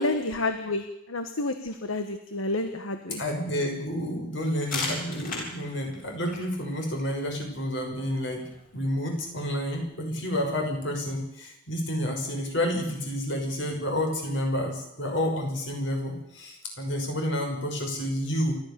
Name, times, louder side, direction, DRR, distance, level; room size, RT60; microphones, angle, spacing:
voice 1, 0.0-3.2, left 2 dB, 90° left, 8 dB, 1.5 m, -30 dB
voice 2, 3.2-8.5 8.7-18.6, equal, 65° left, 2 dB, 6.2 m, -30 dB
sound 1, 4.4-9.9, left 3 dB, 40° left, 7.8 m, -39 dB
29.0 x 13.0 x 7.0 m, 0.83 s
head